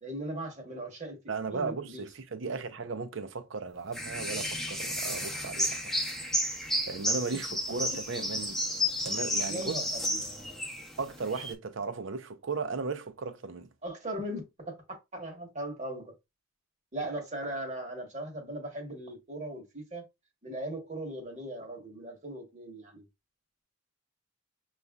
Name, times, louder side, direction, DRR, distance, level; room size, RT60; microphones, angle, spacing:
voice 1, 0.0-2.0 7.9-8.3 9.5-10.6 13.8-16.1 16.9-20.1 20.4-23.0, right 1 dB, 35° right, 1.2 m, -39 dB
voice 2, 1.3-5.9 6.9-8.6 9.0-9.8 11.0-13.7, right 4 dB, 65° right, 0.6 m, -36 dB
sound 1, 3.9-11.5, left 1 dB, ahead, 0.6 m, -32 dB
6.6 x 2.4 x 2.3 m
head